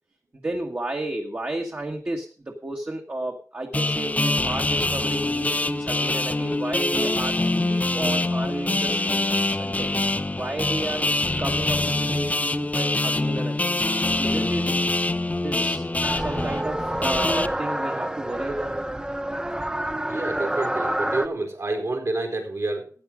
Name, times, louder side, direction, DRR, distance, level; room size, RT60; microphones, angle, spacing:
voice 1, 0.4-9.2 9.5-10.0 10.3-11.1 11.4-13.7 14.2-14.7 15.4-15.9 16.1-18.8, right 2 dB, 35° right, 1 dB, 1.6 m, -32 dB
sound 1, 3.7-17.5, left 2 dB, 25° left, 0.6 m, -25 dB
sound 2, 16.0-21.3, right 1 dB, 15° right, 0.7 m, -28 dB
voice 2, 20.1-22.9, right 2 dB, 60° right, 2 dB, 4.2 m, -28 dB
13.5 x 9.2 x 5.1 m, 0.39 s
wide cardioid pair, 95°, 6 cm